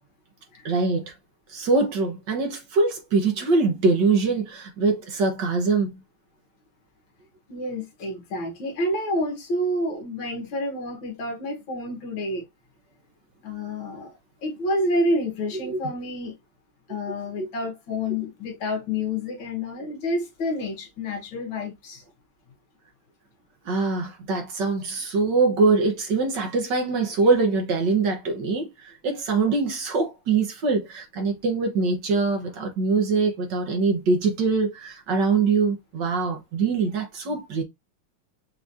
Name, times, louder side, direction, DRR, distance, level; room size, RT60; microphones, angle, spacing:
voice 1, 0.6-1.1 1.5-6.0 15.6-15.8 17.4-17.5 23.6-37.6, right 4 dB, 60° right, 1.5 m, -23 dB
voice 2, 7.5-12.4 13.4-16.4 16.9-22.0, left 1 dB, 65° left, 1.9 m, -29 dB
6.0 x 3.0 x 2.6 m
omnidirectional pair, 2.4 m